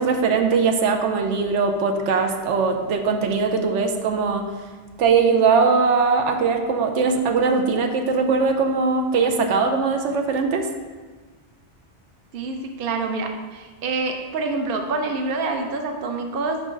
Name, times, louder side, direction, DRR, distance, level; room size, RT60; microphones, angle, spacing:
voice 1, 0.0-4.5 5.0-10.7, right 5 dB, 90° right, 4 dB, 1.0 m, -20 dB
voice 2, 12.3-16.6, right 3 dB, 55° right, 4 dB, 0.9 m, -26 dB
5.5 x 4.6 x 5.2 m, 1.4 s
omnidirectional pair, 1.2 m